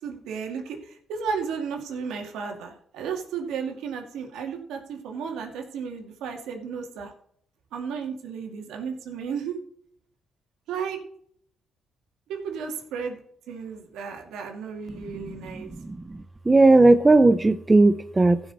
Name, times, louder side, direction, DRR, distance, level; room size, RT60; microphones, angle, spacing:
voice 1, 0.0-7.1 7.7-9.6 10.7-11.0 12.3-13.2 13.5-15.7, right 6 dB, 85° right, 3 dB, 2.3 m, -33 dB
voice 2, 15.0-18.4, right 2 dB, 20° right, 12 dB, 0.7 m, -18 dB
15.5 x 6.1 x 4.1 m, 0.65 s
cardioid pair, 90°, 0 cm